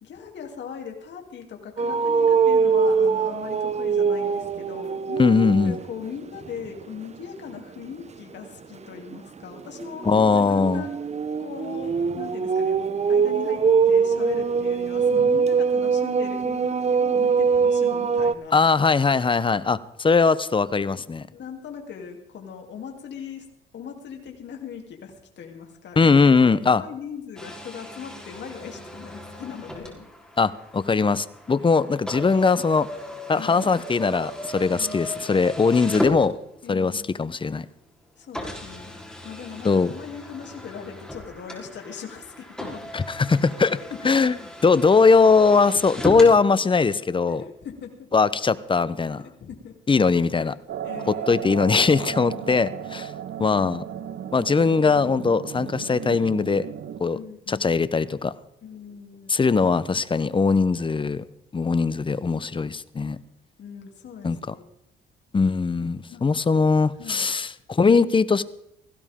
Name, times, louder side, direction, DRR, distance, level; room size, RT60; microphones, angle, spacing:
voice 1, 0.0-10.9 11.4-12.8 13.1-18.7 21.3-23.5 23.7-30.1 33.4-33.8 34.7-35.4 36.6-37.2 38.2-38.9 39.2-42.9 43.7-44.3 45.7-45.8 47.3-48.1 49.2-49.8 50.8-51.5 52.1-52.6 57.1-57.7 58.6-59.4 63.6-64.6 66.1-66.2 67.0-67.3, left 7 dB, 65° left, 3.2 m, -40 dB
sound 1, 1.8-5.9 6.3-6.7 9.1-18.3, right 5 dB, 35° right, 0.8 m, -22 dB
voice 2, 5.2-5.8 10.0-10.8 18.5-21.3 26.0-26.8 30.4-32.9 33.3-36.4 36.7-37.7 39.6-39.9 42.9-43.8 44.0-44.4 44.6-47.4 48.1-49.2 49.9-50.5 51.1-53.1 53.4-53.8 54.3-56.7 57.0-57.2 57.5-58.3 59.3-61.2 61.5-63.2 64.2-64.4 65.3-68.4, left 4 dB, 25° left, 0.8 m, -20 dB
sound 2, 27.4-36.8 37.6-37.7 38.3-46.4, left 1 dB, 5° left, 3.9 m, -36 dB
sound 3, 50.7-57.0, right 9 dB, 65° right, 1.1 m, -35 dB
18.0 x 15.5 x 3.7 m
cardioid pair, 90°, 20 cm